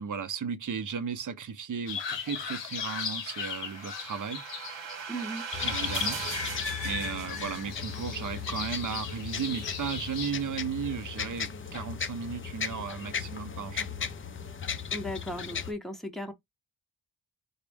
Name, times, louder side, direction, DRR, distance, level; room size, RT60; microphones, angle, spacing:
voice 1, 0.0-4.4 5.6-14.1, right 6 dB, 45° right, 0.6 m, -35 dB
sound 1, 1.9-10.3, left 6 dB, 70° left, 0.8 m, -38 dB
sound 2, 2.8-8.1, right 7 dB, 80° right, 0.8 m, -40 dB
voice 2, 5.1-5.5 14.9-16.3, equal, ahead, 0.7 m, -36 dB
sound 3, 5.5-15.7, left 7 dB, 30° left, 0.4 m, -36 dB
3.6 x 2.0 x 3.4 m
wide cardioid pair, 110°, 45 cm